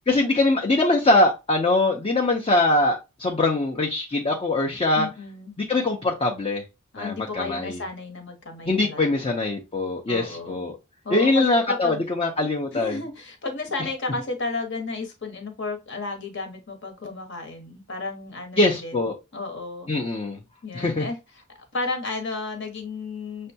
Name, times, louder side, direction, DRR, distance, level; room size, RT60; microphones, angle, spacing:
voice 1, 0.1-5.1 5.7-6.6 7.0-7.8 8.7-10.8 11.1-13.0 18.6-19.2 19.9-20.4 20.7-21.1, left 2 dB, 30° left, 1 dB, 0.6 m, -22 dB
voice 2, 5.0-5.5 6.9-9.3 10.1-10.7 11.0-12.0 12.7-19.9 20.6-21.2 21.5-23.5, left 3 dB, 60° left, 4 dB, 1.1 m, -33 dB
6.4 x 2.2 x 2.7 m, 0.25 s
head